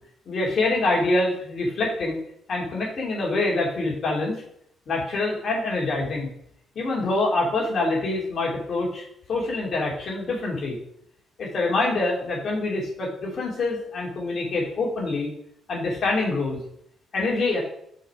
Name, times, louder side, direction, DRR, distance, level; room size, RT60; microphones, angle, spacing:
voice 1, 0.3-2.2 2.5-4.3 4.9-6.3 6.7-9.0 9.3-10.8 11.4-15.3 15.7-16.6 17.1-17.6, left 2 dB, 55° left, -3 dB, 3.1 m, -25 dB
6.2 x 5.4 x 4.9 m, 0.71 s
cardioid pair, 90°, 0 cm